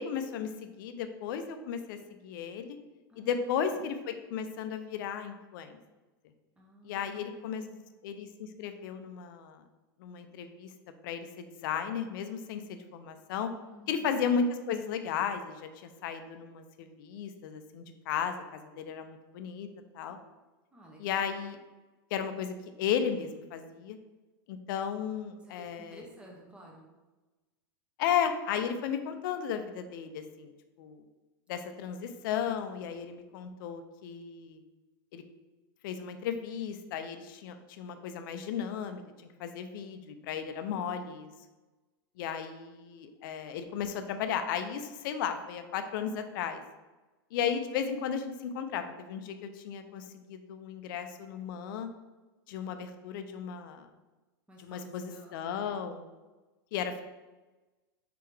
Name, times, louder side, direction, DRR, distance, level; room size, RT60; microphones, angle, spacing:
voice 1, 0.0-2.8 3.2-5.8 6.8-7.6 8.0-9.6 10.0-10.7 11.0-13.5 13.9-19.7 19.9-20.2 21.0-21.6 22.1-24.0 24.5-26.0 28.0-30.5 30.8-31.0 31.5-34.6 35.1-35.2 35.8-39.0 39.4-41.3 42.2-46.6 47.3-51.9 52.5-53.9 54.6-56.1 56.7-57.0, left 7 dB, 60° left, 8 dB, 0.5 m, -35 dB
voice 2, 3.1-3.8 6.6-7.8 13.7-14.1 20.7-21.3 25.4-26.9 54.5-55.8, right 1 dB, 10° right, -1 dB, 0.8 m, -52 dB
3.6 x 3.3 x 3.2 m, 1.2 s
supercardioid pair, 130°, 12 cm